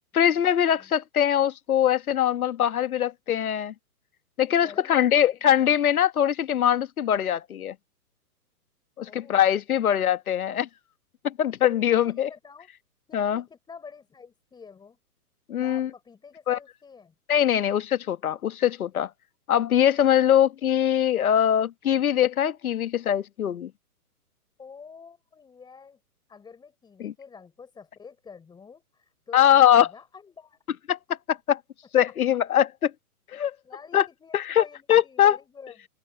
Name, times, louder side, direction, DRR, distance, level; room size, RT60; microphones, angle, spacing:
voice 1, 0.1-3.7 4.4-7.7 9.0-10.7 11.2-12.3 13.1-13.4 15.5-15.9 16.5-16.6 17.3-19.1 19.5-23.7 27.0-27.1 29.3-29.9 30.9-31.0 31.3-31.6 31.9-32.9 33.3-33.5 33.9-34.0 34.3-34.6 34.9-35.4, left 10 dB, 70° left, 1.6 m, -22 dB
voice 2, 4.4-5.8 9.1-9.5 11.9-12.7 13.1-15.0 15.6-17.1 24.6-26.0 26.3-30.6 33.6-35.9, left 5 dB, 10° left, 5.0 m, -48 dB
open air
hypercardioid pair, 150°, 45 cm